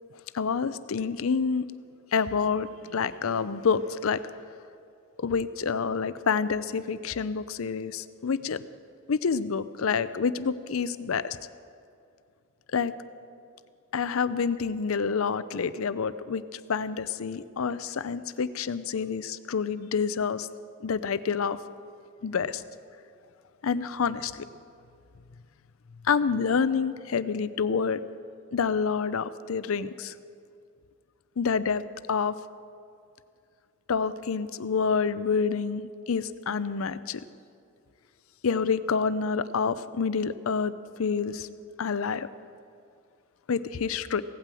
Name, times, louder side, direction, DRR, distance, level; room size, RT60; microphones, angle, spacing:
voice 1, 0.3-1.6 2.1-2.7 2.9-4.2 5.2-8.6 9.1-11.4 12.7-12.9 13.9-16.4 16.7-20.5 20.8-21.6 22.2-22.6 23.6-24.3 26.1-28.0 28.5-30.1 31.4-31.8 32.1-32.3 33.9-37.2 38.4-40.7 41.0-41.5 41.8-42.3 43.5-44.2, left 5 dB, 75° left, 15 dB, 0.5 m, -27 dB
16.5 x 9.1 x 7.5 m, 2.4 s
head